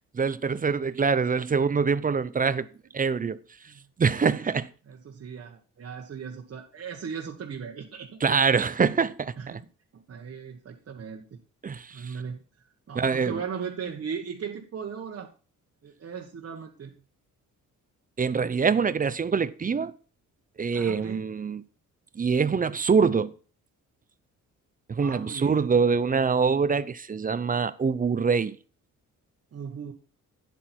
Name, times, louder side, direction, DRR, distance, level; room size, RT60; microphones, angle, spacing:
voice 1, 0.1-2.7 2.9-3.4 4.0-4.7 8.2-9.6 11.6-12.2 12.9-13.4 18.2-19.9 20.6-21.6 22.2-23.3 24.9-28.6, right 5 dB, 25° right, 0.6 m, -24 dB
voice 2, 4.9-8.2 9.4-9.7 9.9-11.4 11.9-12.4 12.9-15.3 15.8-16.9 20.7-21.2 25.0-25.7 29.5-29.9, right 6 dB, 45° right, 1.4 m, -38 dB
9.9 x 8.2 x 4.4 m
cardioid pair, 110°, 32 cm